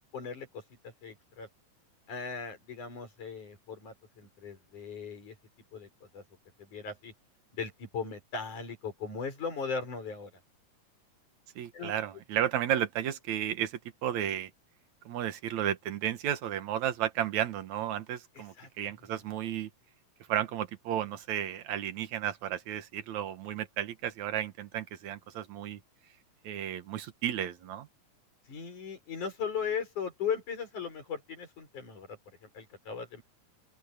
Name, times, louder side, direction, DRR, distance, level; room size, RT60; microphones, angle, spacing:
voice 1, 0.1-1.5 2.1-5.4 5.7-5.9 6.1-6.2 6.6-7.1 7.5-10.3 11.7-11.9 18.4-19.1 28.5-33.2, left 6 dB, 70° left, 7.6 m, -38 dB
voice 2, 11.6-14.5 15.1-19.7 20.3-25.8 26.4-27.9, right 10 dB, 65° right, 2.6 m, -33 dB
open air
omnidirectional pair, 3.6 m